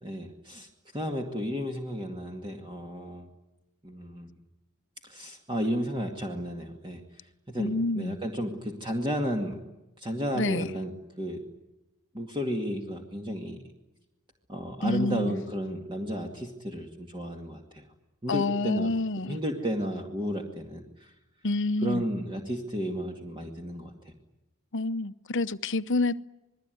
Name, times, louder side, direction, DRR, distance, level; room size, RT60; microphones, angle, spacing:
voice 1, 0.0-3.3 3.8-4.3 5.0-7.0 7.5-9.6 10.0-11.4 12.1-13.6 14.5-17.8 18.2-18.9 19.3-21.1 21.8-23.9, equal, 25° right, 2.3 m, -33 dB
voice 2, 7.6-8.2 10.3-10.7 14.8-15.4 18.3-19.4 21.4-22.0 24.7-26.2, left 2 dB, 60° left, 0.9 m, -28 dB
27.5 x 21.0 x 9.4 m
head